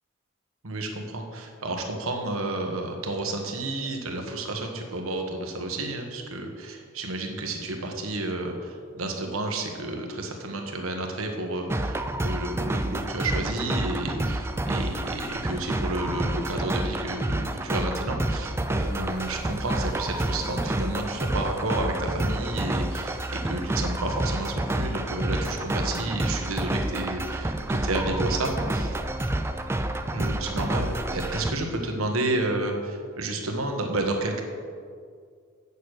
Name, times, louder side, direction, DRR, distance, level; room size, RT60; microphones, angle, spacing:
voice 1, 0.6-23.2 23.4-28.9 30.1-34.4, right 2 dB, 90° right, 3 dB, 1.4 m, -31 dB
sound 1, 11.7-31.5, right 1 dB, 10° right, 0.3 m, -29 dB
8.3 x 6.7 x 6.5 m, 2.1 s
head